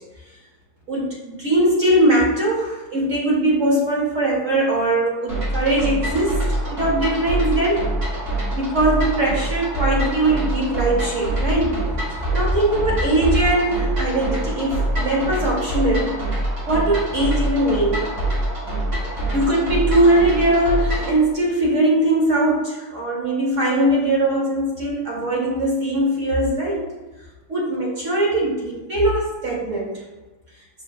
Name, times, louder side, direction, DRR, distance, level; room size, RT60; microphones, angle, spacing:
voice 1, 0.9-6.4 6.7-7.9 8.5-11.8 12.3-16.2 16.7-18.1 19.3-26.8 27.5-30.0, right 1 dB, 65° right, -4 dB, 0.8 m, -20 dB
sound 1, 5.3-21.2, right 1 dB, 40° right, 1.4 m, -25 dB
5.8 x 3.1 x 2.3 m, 1.2 s
omnidirectional pair, 2.2 m